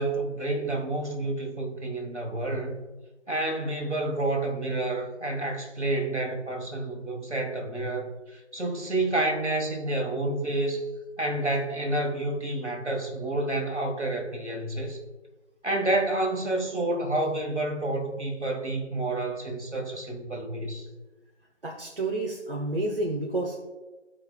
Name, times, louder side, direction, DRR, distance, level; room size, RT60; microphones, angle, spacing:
voice 1, 0.0-2.8 3.3-10.9 11.2-15.0 15.6-20.9, right 2 dB, 65° right, 2 dB, 1.8 m, -29 dB
voice 2, 21.6-23.7, right 2 dB, 50° right, -1 dB, 0.9 m, -30 dB
14.5 x 5.0 x 2.3 m, 1.2 s
figure-of-eight pair, 165°, 37 cm